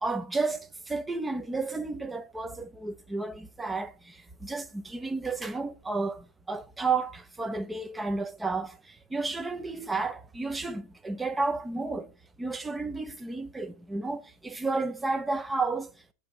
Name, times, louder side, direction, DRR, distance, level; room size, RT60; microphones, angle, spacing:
voice 1, 0.0-8.8 9.1-12.1 12.4-15.9, right 3 dB, 10° right, 0.6 m, -32 dB
7.7 x 2.7 x 4.7 m
supercardioid pair, 140°, 0 cm